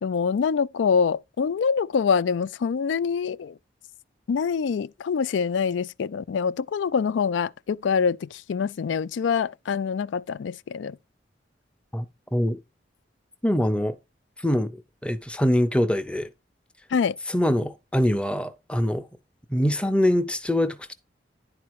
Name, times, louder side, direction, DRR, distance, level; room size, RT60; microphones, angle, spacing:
voice 1, 0.0-3.5 4.3-11.0 16.9-17.1, left 6 dB, 85° left, 0.4 m, -25 dB
voice 2, 13.4-14.0 14.4-14.7 15.0-16.3 17.3-19.0 19.5-20.9, equal, 5° left, 0.6 m, -23 dB
10.5 x 4.2 x 4.7 m
head